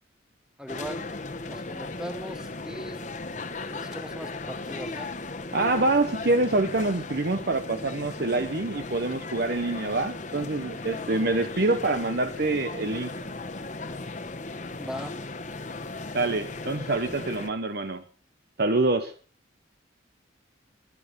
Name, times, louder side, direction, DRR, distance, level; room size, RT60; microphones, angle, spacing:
voice 1, 0.6-1.1 1.5-3.0 3.7-5.1 14.8-15.1, equal, 5° right, 9 dB, 1.0 m, -39 dB
sound 1, 0.7-17.5, left 3 dB, 40° left, 1.2 m, -36 dB
voice 2, 5.5-13.1 16.1-18.0 18.6-19.1, right 2 dB, 55° right, 8 dB, 1.0 m, -26 dB
22.0 x 9.0 x 5.4 m, 0.40 s
head